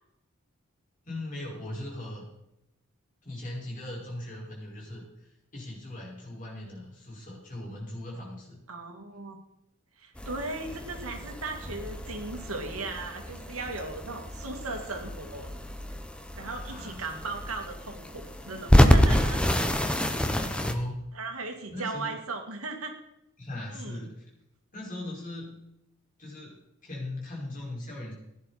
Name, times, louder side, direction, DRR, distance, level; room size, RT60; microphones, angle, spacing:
voice 1, 1.0-2.2 3.2-8.6 16.6-17.1 20.2-21.1 21.7-22.2 23.4-24.3 24.7-25.6 26.2-26.6 26.8-28.1, left 1 dB, 40° left, -3 dB, 5.4 m, -39 dB
voice 2, 8.7-9.4 10.0-15.5 16.4-19.4 19.8-20.0 21.1-22.9 23.7-24.0, right 3 dB, 80° right, 4 dB, 2.4 m, -37 dB
sound 1, 10.2-20.7, equal, 5° left, 1.0 m, -27 dB
16.0 x 10.0 x 4.3 m, 0.83 s
head